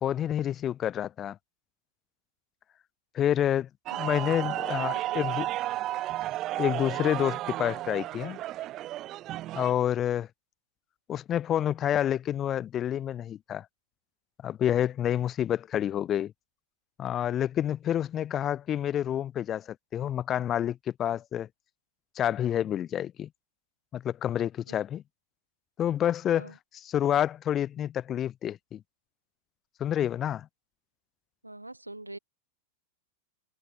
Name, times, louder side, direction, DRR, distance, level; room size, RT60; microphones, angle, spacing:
voice 1, 0.0-1.4 3.1-3.7 4.0-5.5 6.6-8.4 9.5-10.3 11.1-13.7 14.4-16.3 17.0-21.5 22.2-23.3 23.9-25.0 25.8-28.8 29.8-30.5, left 10 dB, 30° left, 0.6 m, -28 dB
sound 1, 3.9-9.7, right 15 dB, 35° right, 0.8 m, -33 dB
voice 2, 31.4-32.2, right 2 dB, 85° right, 4.9 m, -43 dB
figure-of-eight pair, 90°, 0 cm